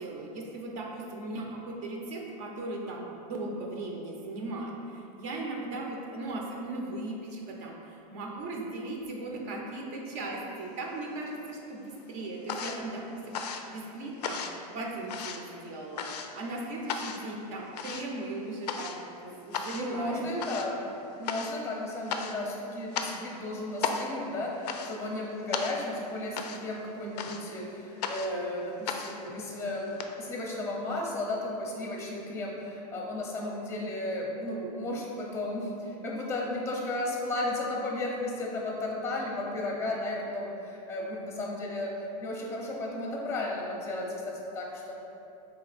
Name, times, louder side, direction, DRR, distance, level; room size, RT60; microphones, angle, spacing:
voice 1, 0.0-14.4 14.7-20.8, right 2 dB, 55° right, -1 dB, 0.7 m, -38 dB
sound 1, 10.7-11.5 11.8-30.1, left 6 dB, 85° left, 0.4 m, -37 dB
voice 2, 19.7-20.7 21.2-44.9, left 1 dB, 15° left, -1 dB, 0.6 m, -34 dB
3.7 x 2.9 x 4.1 m, 2.8 s
supercardioid pair, 125°, 20 cm